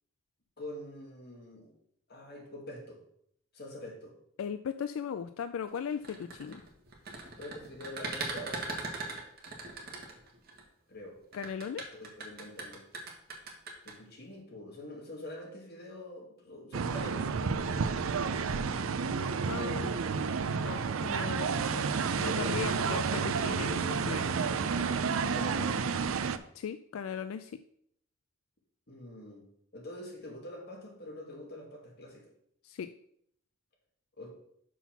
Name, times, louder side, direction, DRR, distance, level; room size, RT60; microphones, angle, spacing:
voice 1, 0.6-1.7 2.1-3.0 3.5-4.2 7.4-8.7 10.9-11.2 11.9-12.8 13.8-17.3 25.3-25.8 28.9-29.5 29.7-32.3 34.2-34.3, left 1 dB, 55° left, -1 dB, 2.2 m, -45 dB
voice 2, 4.4-6.6 11.3-11.8 19.2-20.0 20.5-24.4 26.5-27.6 32.6-32.9, left 7 dB, 85° left, 11 dB, 0.3 m, -38 dB
sound 1, 5.9-10.6 11.3-13.9, right 3 dB, 50° right, 1.6 m, -39 dB
sound 2, 16.7-26.4, right 5 dB, 85° right, 0.5 m, -30 dB
6.1 x 5.6 x 5.9 m, 0.70 s
head